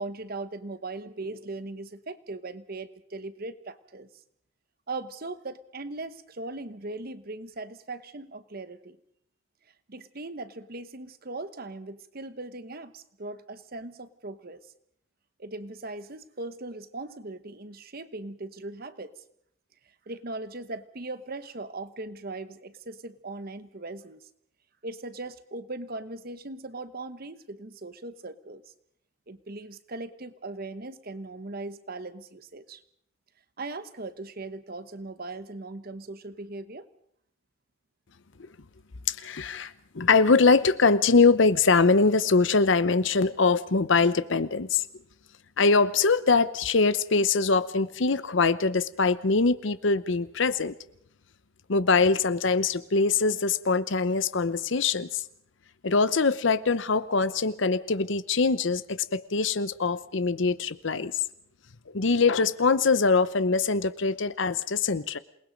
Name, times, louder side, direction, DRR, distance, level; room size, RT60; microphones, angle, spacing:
voice 1, 0.0-4.1 4.9-9.0 9.9-14.6 15.4-19.1 20.1-24.2 24.8-28.6 29.3-32.8 33.6-36.9, right 2 dB, 45° right, 12 dB, 1.1 m, -39 dB
voice 2, 39.1-44.8 45.6-50.8 51.7-55.2 55.8-61.1 61.9-65.2, left 4 dB, 60° left, 15 dB, 0.8 m, -23 dB
28.0 x 19.5 x 5.2 m, 0.69 s
head